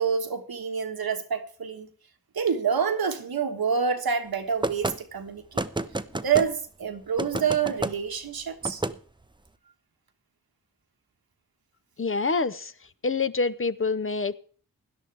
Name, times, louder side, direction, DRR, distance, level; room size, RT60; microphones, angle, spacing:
voice 1, 0.0-1.9 2.3-5.6 6.1-8.8, right 6 dB, 75° right, 1.4 m, -27 dB
sound 1, 4.6-5.0 5.5-6.5 7.2-7.9 8.6-8.9, right 2 dB, 15° right, 0.7 m, -29 dB
voice 2, 12.0-12.7 13.0-14.4, left 4 dB, 35° left, 0.7 m, -26 dB
17.0 x 11.0 x 3.4 m
cardioid pair, 45°, 36 cm